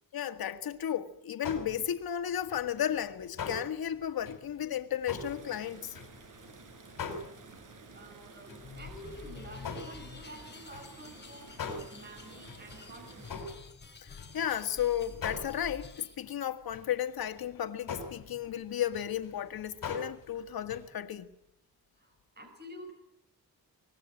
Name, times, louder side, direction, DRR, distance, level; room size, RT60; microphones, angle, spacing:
voice 1, 0.1-6.0 14.0-21.3, left 10 dB, 85° left, 1.8 m, -34 dB
sound 1, 1.4-2.0 2.3-6.5 6.9-8.1 8.5-8.8 9.0-14.7 15.1-15.9 16.2-16.3 16.7-16.9 17.4-17.6 17.9-20.3 20.6-20.9, left 4 dB, 65° left, 5.4 m, -42 dB
sound 2, 5.1-13.4, right 3 dB, 60° right, 6.6 m, -52 dB
voice 2, 7.9-13.4 22.0-22.9, right 1 dB, 30° right, 5.2 m, -49 dB
sound 3, 8.6-16.2, left 5 dB, 30° left, 3.4 m, -49 dB
24.5 x 20.5 x 9.0 m
wide cardioid pair, 175°, 36 cm